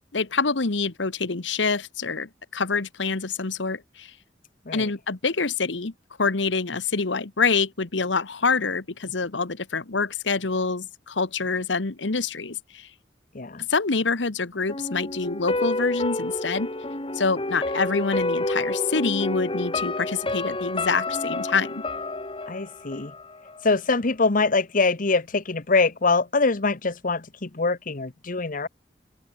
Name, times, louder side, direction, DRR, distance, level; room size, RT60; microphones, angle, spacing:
voice 1, 0.1-4.1 4.7-5.9 6.2-12.9 13.7-16.7 17.1-21.8, left 4 dB, 90° left, 1.3 m, -26 dB
sound 1, 14.7-23.7 24.0-24.1, left 2 dB, 30° left, 2.8 m, -29 dB
voice 2, 22.5-23.1 23.6-28.7, left 3 dB, 50° left, 1.1 m, -24 dB
open air
head